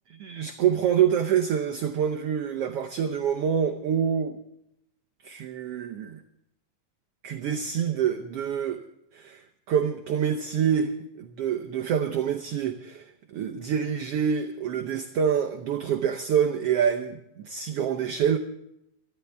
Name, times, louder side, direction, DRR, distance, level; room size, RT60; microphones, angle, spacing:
voice 1, 0.1-4.4 5.2-6.2 7.2-8.8 9.1-18.4, right 8 dB, 70° right, 1.5 m, -26 dB
24.0 x 13.0 x 3.4 m
omnidirectional pair, 3.4 m